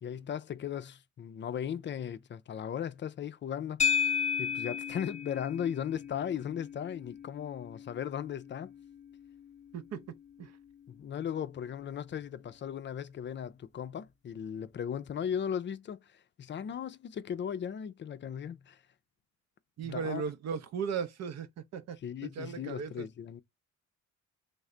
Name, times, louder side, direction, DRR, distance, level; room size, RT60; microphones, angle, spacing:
voice 1, 0.0-4.0 4.4-8.7 10.9-18.8 19.8-20.3 22.0-23.4, left 8 dB, 40° left, 0.4 m, -37 dB
sound 1, 3.8-12.2, left 7 dB, 25° left, 0.8 m, -36 dB
voice 2, 9.7-10.0 10.4-10.5 19.8-21.5 21.7-22.0 22.4-23.1, right 6 dB, 60° right, 0.6 m, -36 dB
3.2 x 2.1 x 3.6 m
cardioid pair, 90°, 30 cm